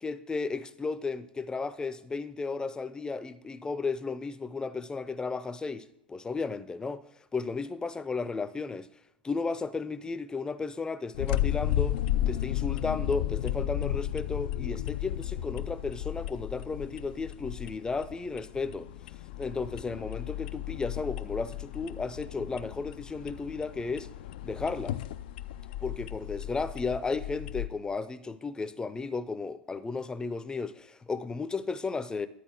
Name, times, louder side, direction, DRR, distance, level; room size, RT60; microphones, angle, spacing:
voice 1, 0.0-7.0 7.3-8.9 9.2-12.0 12.3-18.9 19.4-24.1 24.4-25.0 25.8-32.3, left 4 dB, 15° left, 0.6 m, -34 dB
sound 1, 11.1-27.7, left 12 dB, 65° left, 0.4 m, -34 dB
11.0 x 4.2 x 6.3 m
hypercardioid pair, 95°, 5 cm